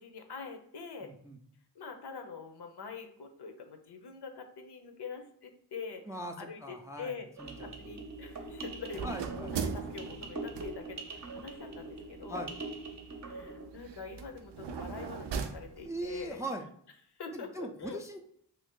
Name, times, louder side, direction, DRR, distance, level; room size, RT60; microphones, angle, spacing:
voice 1, 0.0-1.1 1.7-6.0 6.4-7.3 7.6-12.5 13.3-16.4 17.2-18.0, left 5 dB, 65° left, 5 dB, 0.7 m, -44 dB
voice 2, 1.0-1.4 6.1-7.5 9.0-9.5 12.3-12.5 15.8-16.7 17.3-18.2, right 1 dB, 10° right, 3 dB, 0.3 m, -40 dB
sound 1, 7.4-13.6, right 3 dB, 40° right, 0.7 m, -43 dB
sound 2, 7.4-16.3, right 6 dB, 75° right, 0.5 m, -42 dB
2.7 x 2.4 x 3.6 m, 0.65 s
cardioid pair, 50°, 43 cm